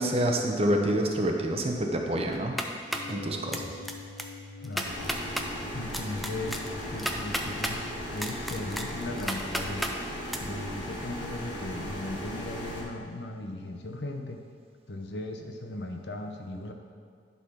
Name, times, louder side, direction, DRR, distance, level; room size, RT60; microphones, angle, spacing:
voice 1, 0.0-2.6 3.1-3.7, right 1 dB, 35° right, 2 dB, 0.8 m, -27 dB
sound 1, 2.3-3.1 3.5-3.9 4.2-4.3 4.6-5.5 5.9-7.8 8.2-9.9 10.3-10.4, equal, ahead, 0.4 m, -32 dB
sound 2, 2.9-12.8 13.1-13.2, left 3 dB, 45° left, 2.4 m, -48 dB
voice 2, 4.6-4.9 5.7-9.9 10.4-14.4 14.9-16.7, left 1 dB, 70° left, 4 dB, 0.8 m, -37 dB
sound 3, 4.8-12.8, equal, 90° left, 1.4 m, -37 dB
10.5 x 4.2 x 5.8 m, 2.1 s
head